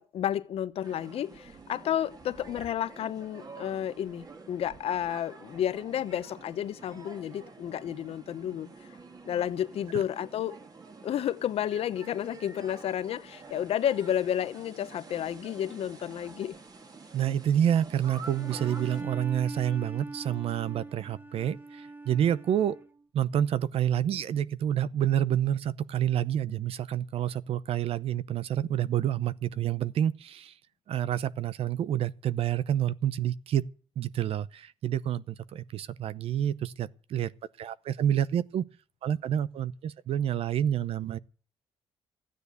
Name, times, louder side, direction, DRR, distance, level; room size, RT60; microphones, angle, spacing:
voice 1, 0.0-8.7 9.2-10.6 11.0-16.5, left 10 dB, 70° left, 0.9 m, -31 dB
sound 1, 0.8-19.0, right 4 dB, 35° right, 2.6 m, -48 dB
voice 2, 17.1-22.8 23.1-30.5 30.9-33.7 34.0-37.3 37.6-38.6 39.0-41.2, right 10 dB, 70° right, 0.7 m, -28 dB
Bowed string instrument, 18.3-23.0, right 3 dB, 20° right, 1.0 m, -41 dB
14.0 x 9.6 x 8.2 m
cardioid pair, 95°, 11 cm